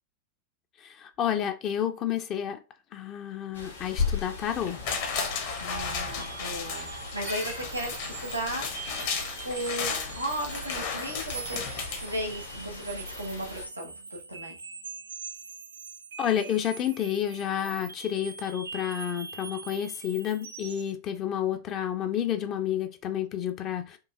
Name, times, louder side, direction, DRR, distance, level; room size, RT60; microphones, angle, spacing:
voice 1, 0.8-2.6 2.9-4.8 16.2-24.0, left 10 dB, 35° left, 7 dB, 0.4 m, -30 dB
sound 1, 3.5-13.6, left 5 dB, 75° left, 1.2 m, -38 dB
sound 2, 4.5-12.7 13.1-13.2, left 5 dB, 50° left, 0.8 m, -35 dB
sound 3, 5.4-20.9, right 6 dB, 70° right, 0.3 m, -42 dB
voice 2, 5.6-8.7 9.4-14.6, equal, 85° right, 1 dB, 1.0 m, -36 dB
4.5 x 2.6 x 2.3 m, 0.31 s
figure-of-eight pair, 90°, 0 cm